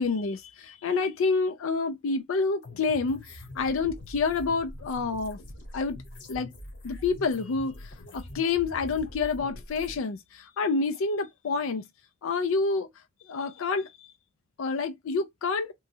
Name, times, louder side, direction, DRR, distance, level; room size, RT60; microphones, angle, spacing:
voice 1, 0.0-5.4 5.7-6.0 6.3-6.5 6.8-7.8 8.1-11.8 12.2-12.9 13.3-14.1 14.6-15.7, left 4 dB, 85° left, 0.4 m, -28 dB
sound 1, 2.6-10.0, left 1 dB, 60° left, 1.0 m, -44 dB
3.0 x 2.3 x 2.6 m
head